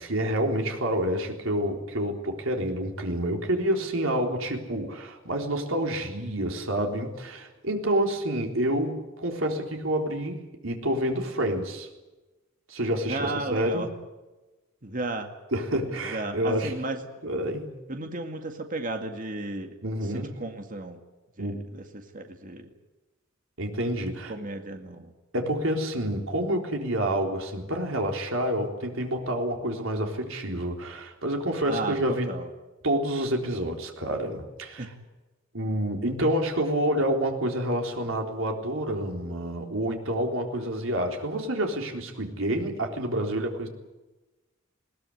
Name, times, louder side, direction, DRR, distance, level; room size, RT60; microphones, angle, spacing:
voice 1, 0.0-11.9 12.7-13.9 15.5-16.7 17.2-17.8 19.8-20.4 21.4-21.5 23.6-24.3 25.3-32.4 32.8-34.9 35.5-43.7, right 1 dB, 80° right, 2 dB, 3.9 m, -28 dB
voice 2, 13.1-13.9 14.8-15.3 15.9-17.0 17.9-19.7 20.1-21.0 21.4-22.7 24.1-25.1 31.7-32.5 34.8-35.0, right 2 dB, 40° right, 5 dB, 2.1 m, -34 dB
21.0 x 18.5 x 9.8 m, 1.1 s
head